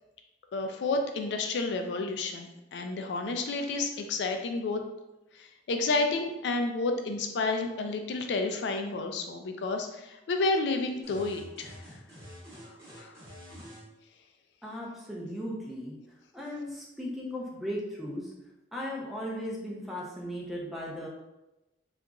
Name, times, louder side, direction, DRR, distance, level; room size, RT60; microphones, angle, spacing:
voice 1, 0.5-4.8 5.4-11.7 13.0-13.1, left 3 dB, 70° left, 5 dB, 0.3 m, -30 dB
sound 1, 11.0-13.9, equal, 15° right, 0.9 m, -47 dB
voice 2, 14.6-16.0 16.3-18.3 18.7-21.1, equal, ahead, -4 dB, 0.5 m, -37 dB
2.9 x 2.4 x 2.2 m, 0.97 s
head